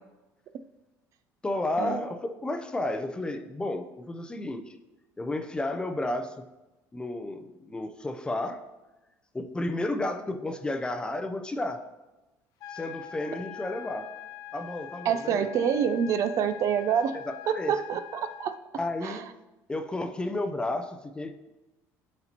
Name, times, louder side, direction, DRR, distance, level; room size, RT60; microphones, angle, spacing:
voice 1, 1.4-4.8 5.2-6.4 6.9-8.6 9.3-11.8 12.7-14.1 14.5-15.5 17.3-17.7 18.7-19.2 19.7-21.5, left 2 dB, 15° left, 8 dB, 0.5 m, -32 dB
sound 1, 12.6-18.6, left 11 dB, 65° left, 0.8 m, -43 dB
voice 2, 15.0-17.2 17.5-18.5 19.0-19.2, right 8 dB, 55° right, 10 dB, 0.4 m, -27 dB
10.5 x 4.3 x 2.9 m, 1.1 s
cardioid pair, 125°, 7 cm